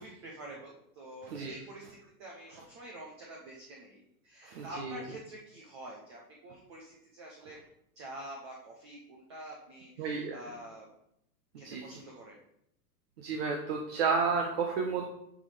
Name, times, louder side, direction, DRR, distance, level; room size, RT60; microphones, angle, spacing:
voice 1, 0.0-7.6 8.0-10.9 11.6-12.4, right 1 dB, 20° right, -2 dB, 0.6 m, -47 dB
voice 2, 1.2-1.6 4.4-5.0 10.0-10.4 11.6-12.0 13.2-15.1, right 5 dB, 40° right, 2 dB, 0.9 m, -32 dB
9.4 x 6.1 x 3.3 m, 0.77 s
supercardioid pair, 170°, 47 cm